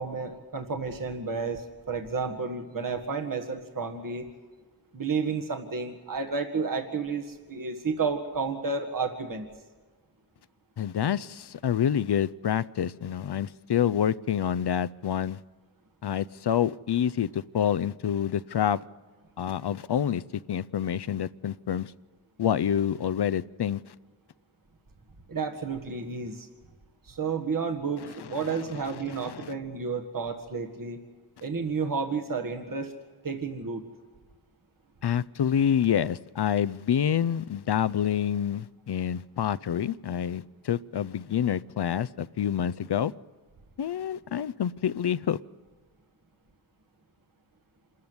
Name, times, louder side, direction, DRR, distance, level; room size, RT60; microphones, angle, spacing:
voice 1, 0.0-4.3 4.9-9.5 25.3-26.5 27.0-31.0 31.4-32.9 33.2-33.8, right 5 dB, 50° right, 1.7 m, -31 dB
voice 2, 10.8-15.4 16.0-18.8 19.4-20.2 20.5-21.9 22.4-23.9 28.0-29.5 35.0-43.1 43.8-45.4, left 9 dB, 65° left, 0.6 m, -27 dB
26.5 x 14.0 x 9.6 m
wide cardioid pair, 70°, 42 cm